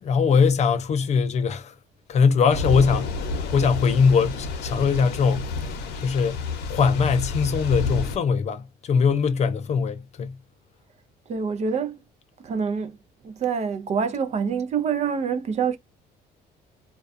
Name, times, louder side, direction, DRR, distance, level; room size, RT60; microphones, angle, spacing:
voice 1, 0.0-1.7 2.1-5.5 6.0-6.4 6.7-10.4, left 5 dB, 40° left, 0.4 m, -21 dB
Thunder / Rain, 2.5-8.2, left 4 dB, 80° left, 0.7 m, -30 dB
voice 2, 11.3-12.0 12.4-13.0 13.2-15.8, right 6 dB, 40° right, 0.4 m, -26 dB
2.3 x 2.2 x 2.5 m
cardioid pair, 110°, 17 cm